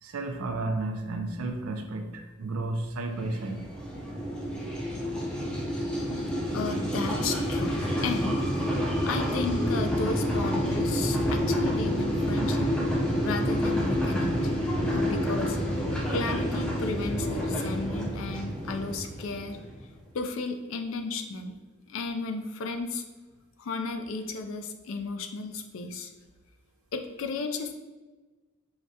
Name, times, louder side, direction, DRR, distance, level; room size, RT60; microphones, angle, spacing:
voice 1, 0.0-3.7 13.1-13.2 14.6-15.2 15.8-16.1, right 2 dB, 80° right, 5 dB, 0.4 m, -33 dB
sound 1, 3.2-19.8, equal, 5° left, 0.4 m, -28 dB
voice 2, 6.5-8.4 9.0-12.7 13.2-14.5 14.9-15.6 16.1-19.6 20.1-21.5 21.9-23.0 23.6-26.1 26.9-27.7, left 3 dB, 65° left, 6 dB, 0.3 m, -33 dB
4.8 x 2.1 x 2.6 m, 1.2 s
head